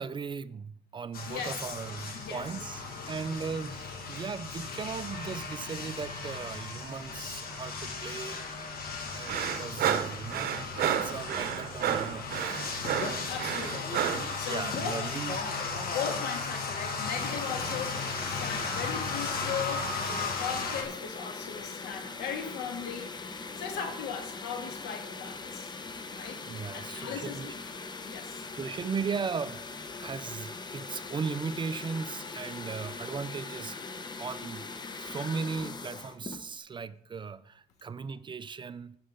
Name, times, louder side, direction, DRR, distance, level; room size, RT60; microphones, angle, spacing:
voice 1, 0.0-8.8 9.1-12.9 14.2-15.7 26.5-27.5 28.6-29.6 30.0-34.7 35.0-39.0, right 5 dB, 30° right, 0.5 m, -37 dB
sound 1, 1.1-20.8, left 4 dB, 60° left, 2.1 m, -36 dB
voice 2, 1.3-1.8 2.1-2.6 8.9-9.6 13.2-15.1 15.4-25.7 26.1-26.4 26.7-27.5 28.0-28.4, left 7 dB, 80° left, 2.2 m, -38 dB
sound 2, 9.3-14.3, right 9 dB, 60° right, 0.9 m, -30 dB
sound 3, 17.1-36.5, left 4 dB, 25° left, 0.8 m, -41 dB
16.0 x 6.4 x 3.8 m
cardioid pair, 110°, 17 cm